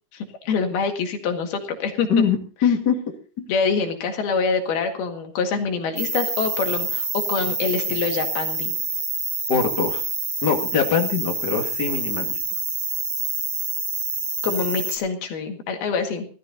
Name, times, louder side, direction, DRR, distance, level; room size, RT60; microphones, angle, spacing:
voice 1, 0.4-2.1 3.5-8.7 14.4-16.3, left 5 dB, 75° left, 4 dB, 3.8 m, -25 dB
voice 2, 2.6-3.0 3.4-3.5 9.5-10.0 10.4-12.4, left 6 dB, 35° left, 3 dB, 1.9 m, -22 dB
sound 1, 6.0-15.0, right 3 dB, 30° right, 3.5 m, -27 dB
17.0 x 13.5 x 4.1 m, 0.39 s
omnidirectional pair, 4.5 m